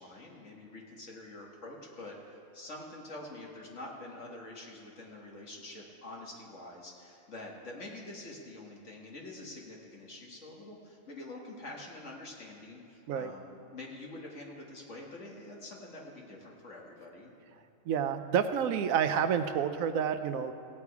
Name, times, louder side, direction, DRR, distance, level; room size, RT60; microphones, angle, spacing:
voice 1, 0.0-17.6, left 2 dB, 60° left, -2 dB, 2.0 m, -46 dB
voice 2, 17.9-20.5, right 8 dB, 80° right, 9 dB, 1.0 m, -29 dB
16.5 x 8.6 x 4.8 m, 2.6 s
omnidirectional pair, 1.4 m